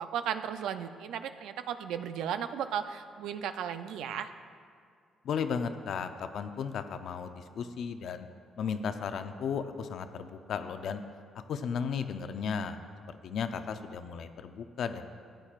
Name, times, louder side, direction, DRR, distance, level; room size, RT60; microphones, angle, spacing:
voice 1, 0.0-4.3, right 8 dB, 85° right, 10 dB, 0.4 m, -35 dB
voice 2, 5.2-8.3 8.6-11.0 11.3-12.8 13.1-15.0, left 6 dB, 70° left, 9 dB, 0.5 m, -35 dB
14.0 x 8.9 x 2.4 m, 2.2 s
cardioid pair, 90°, 0 cm